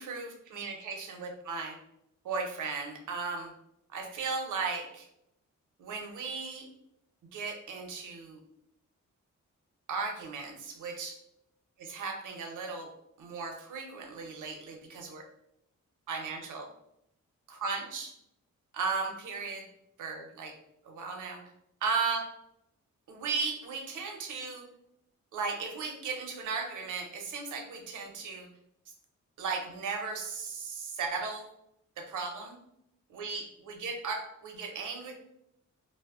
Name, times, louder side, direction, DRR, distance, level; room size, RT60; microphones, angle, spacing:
voice 1, 0.0-1.8 2.2-3.5 3.9-5.1 5.8-6.7 7.3-8.4 9.9-11.2 11.8-12.9 13.2-15.2 16.1-16.7 17.5-18.1 18.7-19.7 20.0-20.5 20.8-21.4 21.8-22.2 23.1-24.6 25.3-28.5 29.4-31.5 32.0-32.6 33.1-35.1, right 4 dB, 80° right, 2 dB, 0.6 m, -36 dB
2.0 x 2.0 x 3.4 m, 0.78 s
cardioid pair, 105°, 30 cm